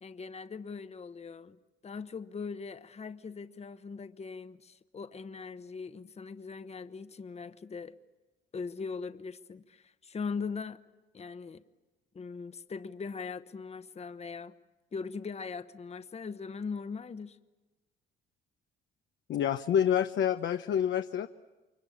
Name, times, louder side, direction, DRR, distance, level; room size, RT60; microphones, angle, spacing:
voice 1, 0.0-8.0 8.5-10.8 11.1-11.6 12.1-14.5 14.9-17.4, left 5 dB, 30° left, 1.0 m, -40 dB
voice 2, 19.3-21.3, left 9 dB, 70° left, 0.8 m, -27 dB
29.0 x 23.5 x 8.8 m
cardioid pair, 90°, 20 cm